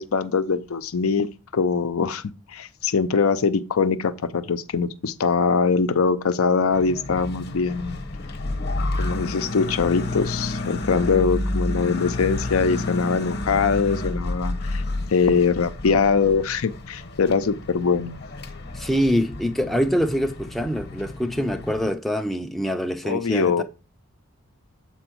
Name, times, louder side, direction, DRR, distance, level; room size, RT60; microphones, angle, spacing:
voice 1, 0.0-8.0 9.0-14.8 15.1-18.2 23.0-23.6, left 5 dB, 85° left, 0.6 m, -22 dB
sound 1, 6.7-21.9, left 2 dB, 50° left, 0.9 m, -30 dB
voice 2, 18.7-23.6, equal, ahead, 0.4 m, -24 dB
6.9 x 4.5 x 4.4 m
head